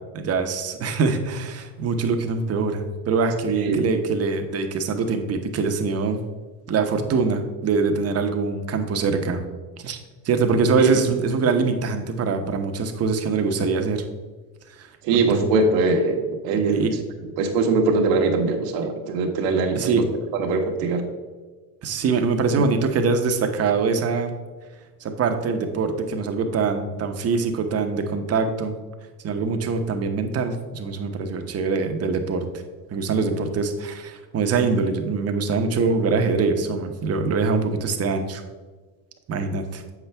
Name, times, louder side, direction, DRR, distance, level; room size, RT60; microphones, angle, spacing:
voice 1, 0.1-6.2 6.7-9.4 9.8-10.0 10.2-14.0 14.7-14.9 15.1-15.5 16.5-16.9 19.7-20.1 21.8-24.4 25.0-28.8 29.2-32.5 32.9-38.4 39.3-39.8, right 4 dB, 30° right, 6 dB, 0.9 m, -23 dB
voice 2, 15.0-16.8 17.4-20.0 20.4-21.1, right 3 dB, 65° right, 2 dB, 1.2 m, -21 dB
7.5 x 5.9 x 3.4 m, 1.4 s
hypercardioid pair, 95°, 47 cm